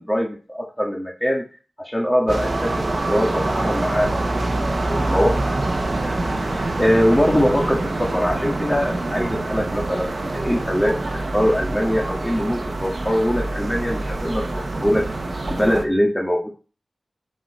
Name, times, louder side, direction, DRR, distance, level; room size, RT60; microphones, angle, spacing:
voice 1, 0.0-1.4 1.8-5.7 6.0-6.1 6.4-15.1 15.5-16.5, equal, 10° left, -1 dB, 1.8 m, -22 dB
sound 1, 2.3-15.8, right 2 dB, 55° right, 1.3 m, -25 dB
7.9 x 5.0 x 4.3 m, 0.36 s
cardioid pair, 40°, 0 cm